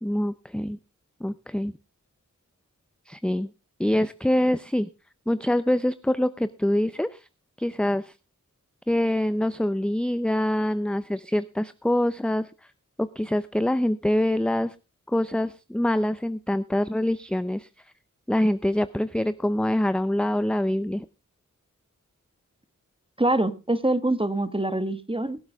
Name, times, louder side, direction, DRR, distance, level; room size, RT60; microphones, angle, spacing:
voice 1, 0.0-0.8 1.2-1.7 3.1-3.5 3.8-4.9 5.3-7.3 7.6-8.1 8.9-12.5 13.0-14.7 15.1-17.7 18.3-21.1, left 1 dB, 5° left, 0.6 m, -25 dB
voice 2, 23.2-25.4, right 1 dB, 15° right, 1.5 m, -24 dB
21.5 x 7.9 x 3.5 m
wide cardioid pair, 45°, 32 cm